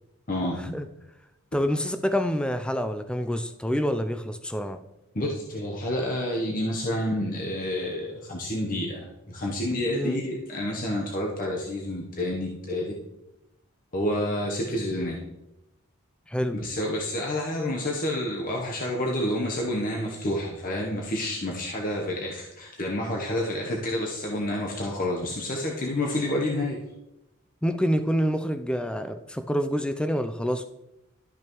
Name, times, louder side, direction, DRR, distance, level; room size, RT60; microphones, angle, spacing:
voice 1, 0.3-0.8 5.1-13.0 13.9-15.2 16.5-26.8, left 1 dB, 40° left, -1 dB, 0.9 m, -29 dB
voice 2, 1.5-4.8 9.9-10.2 16.3-16.6 27.6-30.7, equal, 5° left, 9 dB, 0.3 m, -27 dB
12.5 x 5.9 x 3.0 m, 0.91 s
head